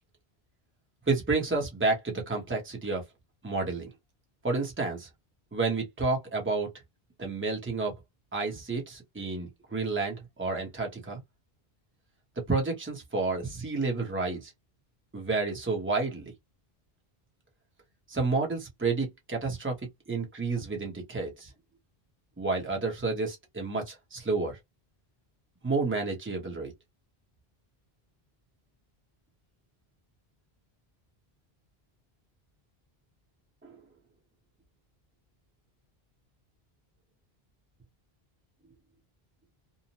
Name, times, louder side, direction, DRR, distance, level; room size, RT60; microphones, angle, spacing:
voice 1, 1.1-3.0 3.4-3.9 4.4-5.1 5.5-6.7 7.2-7.9 8.3-11.2 12.5-14.5 15.1-16.2 18.1-19.8 20.1-21.5 22.4-24.6 25.6-26.7 33.6-33.8, right 3 dB, 15° right, 0.8 m, -30 dB
2.8 x 2.0 x 2.8 m
omnidirectional pair, 1.0 m